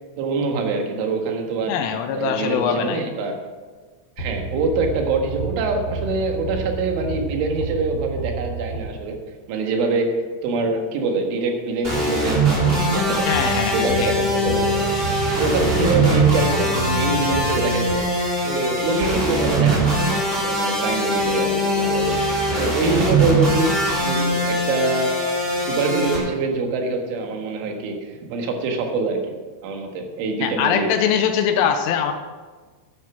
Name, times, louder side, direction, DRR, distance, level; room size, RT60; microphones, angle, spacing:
voice 1, 0.2-1.8 2.2-3.4 4.2-9.2 9.5-10.1 10.4-12.4 12.9-14.9 15.3-18.0 18.4-22.2 22.6-23.7 24.0-25.3 25.6-29.3 29.6-30.9, right 3 dB, 75° right, 3 dB, 4.0 m, -24 dB
voice 2, 1.7-3.0 13.3-14.1 30.4-32.1, left 8 dB, 85° left, 6 dB, 3.3 m, -22 dB
sound 1, 4.2-9.3 13.3-18.5, right 2 dB, 65° left, 1.1 m, -30 dB
sound 2, 11.8-26.2, right 1 dB, 15° right, 2.1 m, -21 dB
10.5 x 10.0 x 6.1 m, 1.4 s
omnidirectional pair, 5.7 m